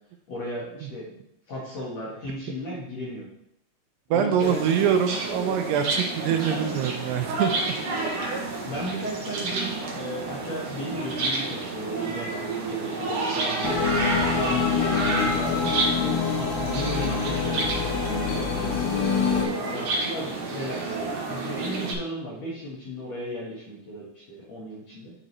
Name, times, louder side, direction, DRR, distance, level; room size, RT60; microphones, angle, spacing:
voice 1, 0.3-1.2 1.5-3.3 4.1-4.9 6.5-6.6 8.6-13.8 14.3-18.6 19.6-25.1, equal, 55° left, -6 dB, 2.1 m, -35 dB
voice 2, 4.1-7.8, right 8 dB, 85° right, 6 dB, 2.7 m, -24 dB
sound 1, 4.4-21.9, right 3 dB, 60° right, 2.3 m, -30 dB
sound 2, 13.6-19.4, left 6 dB, 75° left, 3.2 m, -26 dB
9.7 x 5.2 x 3.1 m, 0.76 s
omnidirectional pair, 4.8 m